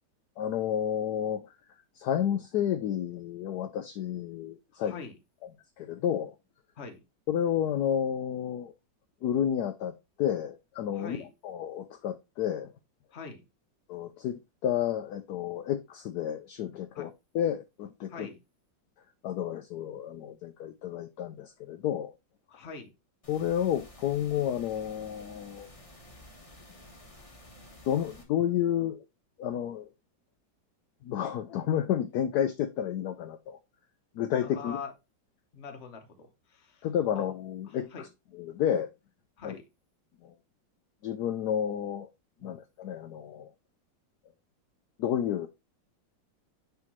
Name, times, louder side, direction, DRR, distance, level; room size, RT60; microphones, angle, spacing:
voice 1, 0.4-1.5 2.0-4.9 5.8-6.3 7.3-8.7 9.2-11.2 11.4-12.7 13.9-17.1 17.3-18.3 19.2-22.1 23.3-25.7 27.9-29.0 29.4-29.9 31.0-33.6 34.2-34.8 36.8-38.1 38.3-38.9 39.4-39.5 40.2-40.3 41.0-42.1 42.4-43.5 45.0-45.5, left 10 dB, 70° left, 1.0 m, -31 dB
voice 2, 4.7-5.2 6.8-7.0 10.9-11.3 13.1-13.4 16.9-17.1 18.1-18.4 22.5-22.9 34.4-34.9 35.5-36.9 37.1-37.2 37.7-38.1 39.4-39.7 42.4-42.6, left 5 dB, 40° left, 1.2 m, -43 dB
sound 1, 23.2-28.2, left 1 dB, 20° left, 1.2 m, -52 dB
9.6 x 3.6 x 3.0 m
omnidirectional pair, 2.0 m